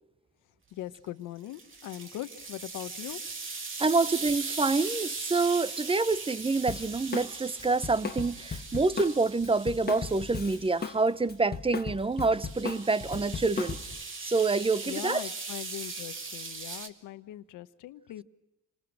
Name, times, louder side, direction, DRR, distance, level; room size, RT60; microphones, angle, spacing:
voice 1, 0.7-3.2 14.8-18.2, left 14 dB, 90° left, 1.1 m, -40 dB
sound 1, 1.5-11.0 12.2-16.9, right 4 dB, 40° right, 2.6 m, -39 dB
voice 2, 3.8-13.8 14.2-15.2, right 3 dB, 20° right, 0.8 m, -27 dB
Drum kit, 6.7-7.3 7.6-11.0 11.3-14.0, left 5 dB, 30° left, 1.5 m, -36 dB
28.0 x 20.0 x 6.3 m
cardioid pair, 90°, 30 cm